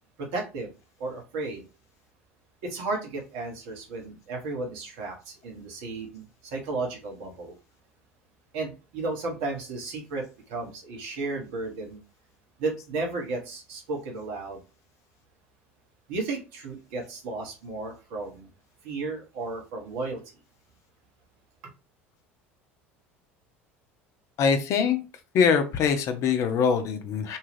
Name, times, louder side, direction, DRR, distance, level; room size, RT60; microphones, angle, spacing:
voice 1, 0.2-0.7 1.0-1.6 2.6-7.6 8.5-12.0 12.6-14.6 16.1-18.5 18.8-20.2, right 3 dB, 65° right, 1 dB, 1.0 m, -34 dB
voice 2, 24.4-25.0 25.3-27.4, left 6 dB, 50° left, 7 dB, 0.6 m, -23 dB
2.7 x 2.4 x 3.1 m, 0.32 s
hypercardioid pair, 70°, 7 cm